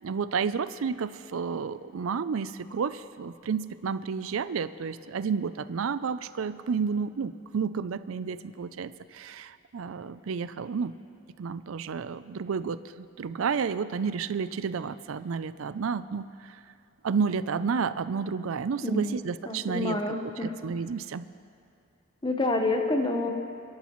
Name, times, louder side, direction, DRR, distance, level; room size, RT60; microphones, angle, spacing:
voice 1, 0.0-10.9 11.4-16.6 17.0-20.0 20.2-21.3, right 5 dB, 90° right, 14 dB, 0.4 m, -31 dB
voice 2, 18.8-19.2 19.5-20.6 22.2-23.3, left 2 dB, 25° left, 4 dB, 1.0 m, -28 dB
29.5 x 11.5 x 3.1 m, 2.4 s
head